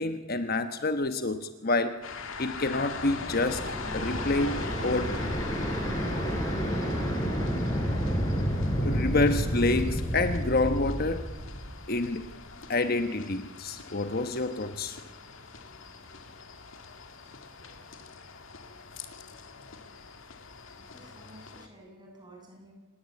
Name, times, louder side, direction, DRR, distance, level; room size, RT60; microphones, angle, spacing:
voice 1, 0.0-2.0 2.4-3.6 3.9-5.1 6.1-6.3 8.7-11.3 11.9-12.3 12.7-15.0, left 2 dB, 45° left, 9 dB, 1.1 m, -28 dB
sound 1, 2.0-21.7, left 4 dB, 70° left, 2.2 m, -43 dB
sound 2, 2.4-12.4, equal, 15° left, 4.5 m, -30 dB
voice 2, 20.7-22.7, right 1 dB, 20° right, 0 dB, 7.2 m, -52 dB
26.0 x 20.5 x 8.5 m, 1.2 s
head